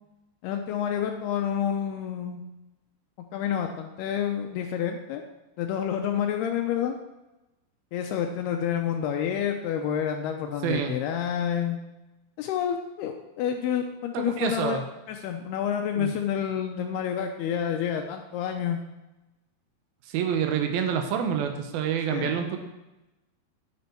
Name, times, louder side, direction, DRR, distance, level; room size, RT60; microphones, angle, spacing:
voice 1, 0.4-2.4 3.3-5.2 5.6-7.0 7.9-11.8 12.4-14.8 15.1-18.8 22.1-22.4, left 9 dB, 85° left, 4 dB, 2.3 m, -29 dB
voice 2, 10.6-11.0 14.1-14.8 16.0-16.1 20.1-22.6, right 8 dB, 75° right, 5 dB, 2.2 m, -27 dB
9.5 x 9.2 x 4.5 m, 1.0 s
omnidirectional pair, 5.4 m